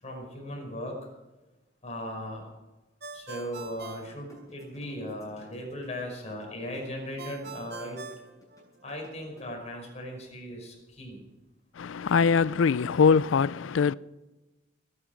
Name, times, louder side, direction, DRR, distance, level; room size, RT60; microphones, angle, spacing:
voice 1, 0.0-1.0 1.8-2.5 3.1-8.0 8.8-11.2, left 1 dB, 35° left, 5.6 m, -38 dB
Ringtone, 3.0-5.0 7.2-9.1, right 5 dB, 55° right, 1.2 m, -44 dB
sound 1, 4.2-9.4, equal, 15° left, 7.4 m, -56 dB
voice 2, 11.8-13.9, left 5 dB, 80° left, 0.4 m, -22 dB
20.5 x 10.0 x 6.0 m
head